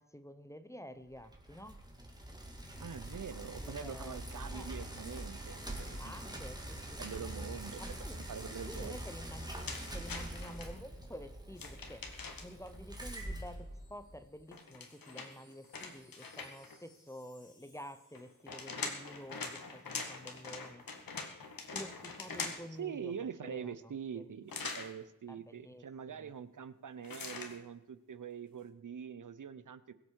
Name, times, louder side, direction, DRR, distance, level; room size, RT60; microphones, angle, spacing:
voice 1, 0.0-1.8 3.6-4.2 4.5-4.7 6.0-7.0 7.8-8.2 8.6-9.5 9.9-12.0 12.4-20.9 21.7-24.3 25.3-26.3, equal, 10° left, 11 dB, 0.8 m, -50 dB
Bicycle, 1.1-14.3, right 1 dB, 10° right, 2.4 m, -44 dB
voice 2, 2.8-6.2 7.0-9.0 22.8-29.9, right 7 dB, 65° right, 14 dB, 0.8 m, -44 dB
sound 1, 9.7-10.7 11.5-12.7 14.5-16.8 18.2-22.8 24.5-24.9 27.0-27.6, left 4 dB, 90° left, 1.9 m, -43 dB
Wind chime, 12.0-19.1 19.4-19.6, left 2 dB, 65° left, 6.2 m, -68 dB
22.0 x 7.9 x 4.7 m, 0.89 s
wide cardioid pair, 115°, 34 cm